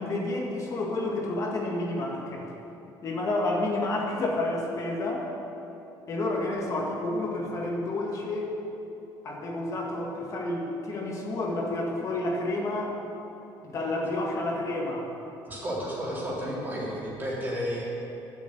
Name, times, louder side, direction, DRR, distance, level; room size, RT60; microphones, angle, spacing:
voice 1, 0.0-2.5 3.0-5.3 6.1-8.5 9.2-13.0 13.6-15.1, left 2 dB, 40° left, -1 dB, 1.8 m, -30 dB
voice 2, 15.5-17.8, equal, 25° right, -6 dB, 3.5 m, -32 dB
11.5 x 7.4 x 8.9 m, 3.0 s
cardioid pair, 150°, 8 cm